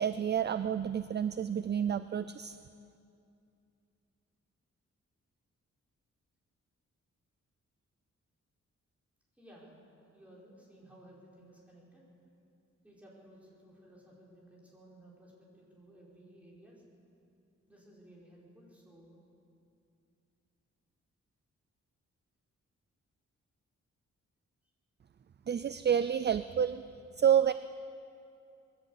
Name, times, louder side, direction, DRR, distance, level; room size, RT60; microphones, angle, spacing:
voice 1, 0.0-2.6 25.5-26.8 27.2-27.5, right 8 dB, 35° right, 12 dB, 0.4 m, -29 dB
voice 2, 9.3-9.7 10.1-12.0 12.8-16.8 17.7-19.2, right 1 dB, 5° right, -5 dB, 5.3 m, -57 dB
21.0 x 14.5 x 8.4 m, 2.5 s
wide cardioid pair, 145°, 30 cm